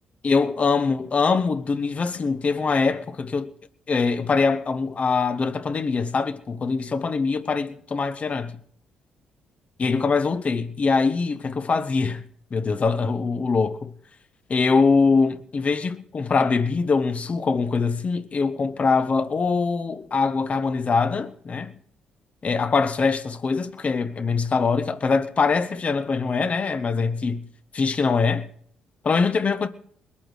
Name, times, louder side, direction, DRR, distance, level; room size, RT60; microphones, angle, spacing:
voice 1, 0.2-3.5 3.9-8.6 9.8-12.2 12.5-13.9 14.5-21.7 22.4-27.4 27.7-28.5 29.0-29.7, left 4 dB, 45° left, 1.0 m, -23 dB
20.5 x 8.7 x 6.5 m
hypercardioid pair, 50°, 3 cm